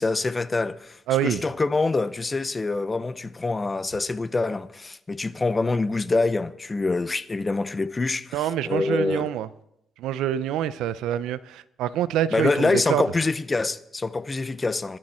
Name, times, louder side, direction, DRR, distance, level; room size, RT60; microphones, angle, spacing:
voice 1, 0.0-9.3 12.3-15.0, left 3 dB, 25° left, 0.8 m, -25 dB
voice 2, 1.1-1.4 8.3-9.5 10.0-13.0, right 11 dB, 90° right, 0.6 m, -26 dB
20.0 x 12.0 x 4.4 m
cardioid pair, 90°, 0 cm